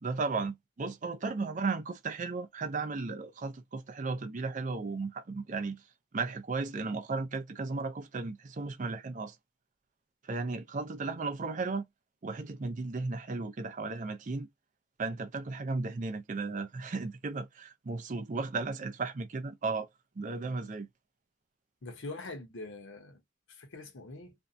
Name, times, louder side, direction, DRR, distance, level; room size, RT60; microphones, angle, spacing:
voice 1, 0.0-5.8 6.1-9.3 10.2-11.8 12.2-14.5 15.0-19.9 20.2-20.9, right 3 dB, 40° right, 0.4 m, -35 dB
voice 2, 21.8-23.2 23.5-24.3, left 2 dB, 65° left, 0.7 m, -43 dB
2.6 x 2.1 x 2.5 m
head